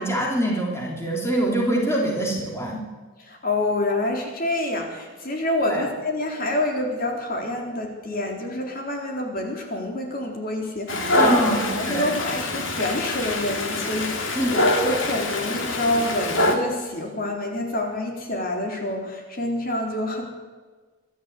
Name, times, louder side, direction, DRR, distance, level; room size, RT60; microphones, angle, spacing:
voice 1, 0.0-2.8 5.6-5.9 11.2-12.1 14.4-14.5, right 1 dB, 15° left, -2 dB, 3.3 m, -24 dB
voice 2, 3.3-20.2, left 1 dB, 45° left, 1 dB, 4.0 m, -27 dB
Dog, 10.9-16.6, left 1 dB, 70° left, 3.0 m, -24 dB
24.5 x 12.5 x 8.5 m, 1.4 s
head